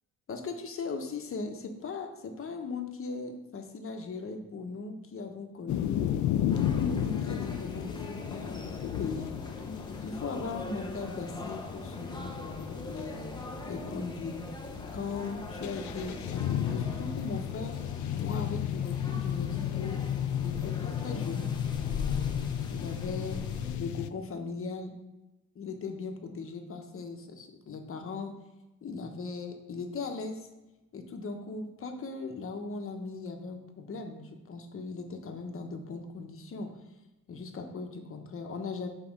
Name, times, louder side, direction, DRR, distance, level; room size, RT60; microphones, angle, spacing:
voice 1, 0.3-6.3 6.7-9.3 10.0-13.3 13.6-14.4 14.9-17.7 18.2-20.0 20.3-21.5 21.8-22.4 22.7-23.4 23.8-24.9 25.5-28.4 28.8-30.5 30.9-36.7 37.3-38.9, left 4 dB, 45° left, 4 dB, 1.1 m, -38 dB
sound 1, 5.7-24.1, left 10 dB, 70° left, 0.4 m, -34 dB
sound 2, 6.5-23.8, left 3 dB, 15° left, 0.9 m, -41 dB
5.9 x 4.1 x 5.4 m, 1.0 s
cardioid pair, 90°, 30 cm